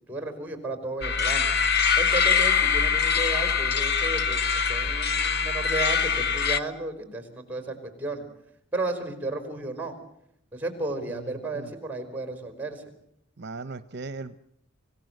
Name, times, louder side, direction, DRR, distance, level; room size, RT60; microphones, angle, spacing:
voice 1, 0.1-1.5 2.0-8.3 8.7-9.9 10.5-12.8, right 2 dB, 10° right, 8 dB, 4.7 m, -33 dB
sound 1, 1.0-6.6, left 6 dB, 55° left, 1.1 m, -23 dB
voice 2, 11.1-11.7 13.4-14.4, right 3 dB, 55° right, 13 dB, 0.8 m, -38 dB
26.0 x 17.0 x 7.9 m, 0.73 s
head